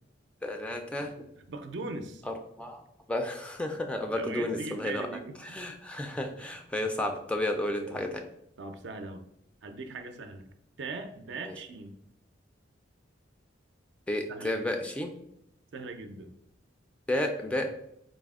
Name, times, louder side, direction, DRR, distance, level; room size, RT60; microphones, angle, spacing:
voice 1, 0.4-1.1 2.3-2.8 3.1-5.1 5.4-8.2 11.4-11.5 14.1-15.1 17.1-17.7, left 1 dB, 5° left, 4 dB, 0.3 m, -32 dB
voice 2, 1.2-2.2 4.1-5.6 7.8-8.0 8.6-9.2 9.6-10.5 10.8-12.0 14.3-14.8 15.7-16.4, right 3 dB, 65° right, 7 dB, 0.4 m, -40 dB
4.0 x 2.0 x 3.5 m, 0.74 s
head